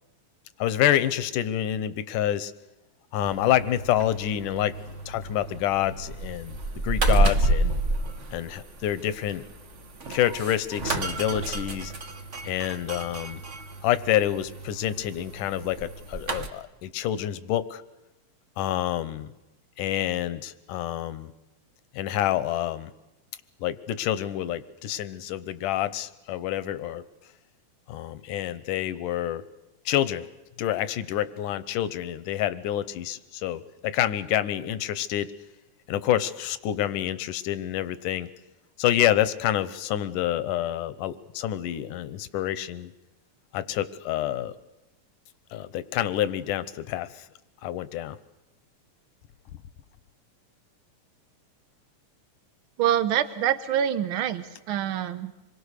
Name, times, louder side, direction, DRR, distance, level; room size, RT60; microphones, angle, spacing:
voice 1, 0.6-2.5 3.1-4.7 5.1-6.6 6.8-7.7 8.3-9.4 10.1-11.9 12.4-13.4 13.8-17.8 18.6-19.3 19.8-21.3 22.0-22.9 23.6-27.0 27.9-29.4 29.9-30.3 30.6-35.3 35.9-38.3 38.8-42.9 43.5-44.5 45.5-47.1 47.6-48.2, left 12 dB, 80° left, 14 dB, 2.5 m, -27 dB
sound 1, 3.2-16.5, right 2 dB, 55° right, 0.8 m, -30 dB
voice 2, 52.8-55.3, right 10 dB, 75° right, 11 dB, 1.2 m, -25 dB
26.5 x 22.5 x 6.6 m, 0.97 s
omnidirectional pair, 3.6 m